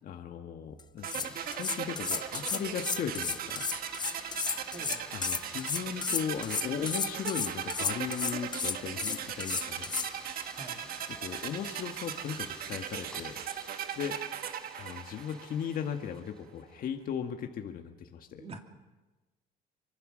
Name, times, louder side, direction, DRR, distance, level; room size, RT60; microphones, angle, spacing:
voice 1, 0.0-3.6 5.1-9.9 11.2-13.4 14.0-14.2 14.8-18.5, left 8 dB, 55° left, 4 dB, 1.7 m, -37 dB
sound 1, 0.8-10.1, left 5 dB, 25° left, 0.7 m, -33 dB
sound 2, 1.0-15.9, right 9 dB, 60° right, 1.5 m, -39 dB
sound 3, 1.2-16.9, left 1 dB, 5° left, 4.5 m, -50 dB
voice 2, 4.7-5.0 10.5-10.8 18.4-18.6, right 3 dB, 35° right, 3 dB, 2.8 m, -44 dB
24.5 x 24.0 x 6.4 m, 1.2 s
cardioid pair, 110°, 17 cm